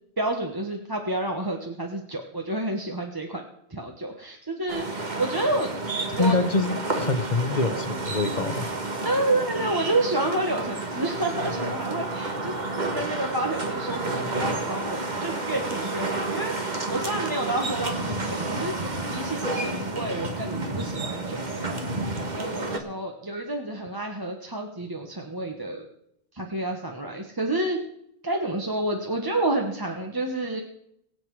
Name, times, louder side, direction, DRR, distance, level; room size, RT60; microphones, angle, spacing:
voice 1, 0.2-3.4 3.7-5.7 6.1-6.4 9.0-21.7 22.3-25.9 26.3-27.8 28.2-30.6, right 2 dB, 20° right, 2 dB, 1.3 m, -29 dB
sound 1, 4.7-22.8, right 2 dB, 45° right, 1.7 m, -30 dB
voice 2, 6.1-8.7, left 3 dB, 45° left, 9 dB, 1.3 m, -25 dB
23.0 x 8.1 x 4.8 m, 0.75 s
omnidirectional pair, 1.1 m